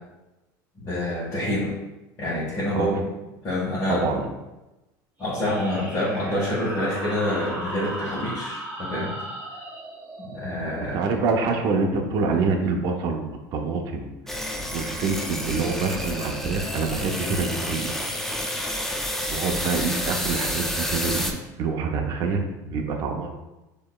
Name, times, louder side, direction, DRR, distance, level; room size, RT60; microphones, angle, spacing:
voice 1, 0.8-1.7 2.2-3.0 3.4-4.0 5.2-9.2 10.2-11.0, left 1 dB, 30° left, -10 dB, 1.4 m, -27 dB
voice 2, 3.9-4.2 10.9-14.1 14.7-17.9 19.3-23.3, right 4 dB, 45° right, 2 dB, 0.6 m, -26 dB
sound 1, 5.2-12.4, right 1 dB, 15° right, 1.1 m, -37 dB
sound 2, 14.3-21.3, equal, 5° left, 0.4 m, -29 dB
6.3 x 3.0 x 2.3 m, 1.0 s
cardioid pair, 140°, 9 cm